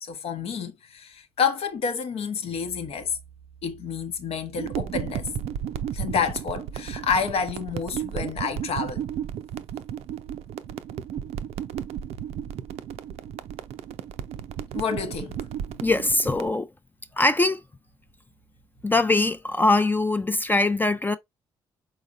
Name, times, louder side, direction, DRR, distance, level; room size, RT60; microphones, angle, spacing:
voice 1, 0.0-3.2 3.6-5.3 5.9-9.0 14.7-15.4, left 6 dB, 65° left, 0.9 m, -29 dB
sound 1, 4.6-16.5, right 9 dB, 70° right, 0.4 m, -34 dB
voice 2, 15.8-16.7 17.1-17.6 18.8-21.1, left 2 dB, 15° left, 0.5 m, -22 dB
4.1 x 3.9 x 2.5 m
hypercardioid pair, 50°, 11 cm